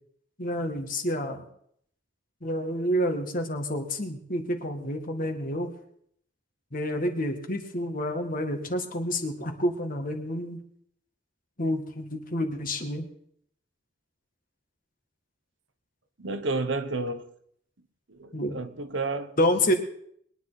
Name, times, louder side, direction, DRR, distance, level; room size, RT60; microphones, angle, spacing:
voice 1, 0.4-1.5 2.4-5.7 6.7-10.6 11.6-13.1 18.3-18.6 19.4-19.7, equal, 45° left, 1.9 m, -29 dB
voice 2, 16.2-17.3 18.1-19.4, right 3 dB, 65° right, 1.2 m, -31 dB
22.0 x 10.5 x 4.1 m
head